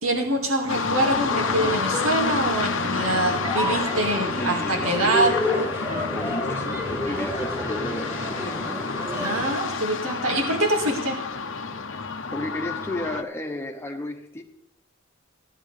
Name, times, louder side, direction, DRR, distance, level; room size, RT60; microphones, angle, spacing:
voice 1, 0.0-5.4 9.1-11.2, right 1 dB, 90° right, 1 dB, 2.2 m, -24 dB
sound 1, 0.7-13.2, left 4 dB, 65° left, 0.8 m, -29 dB
sound 2, 0.9-9.5, equal, 15° right, 3.5 m, -31 dB
voice 2, 4.4-5.4 5.9-8.9 11.9-12.0 12.3-14.4, left 1 dB, 10° left, 1 dB, 1.4 m, -34 dB
16.0 x 11.0 x 3.4 m, 0.76 s
head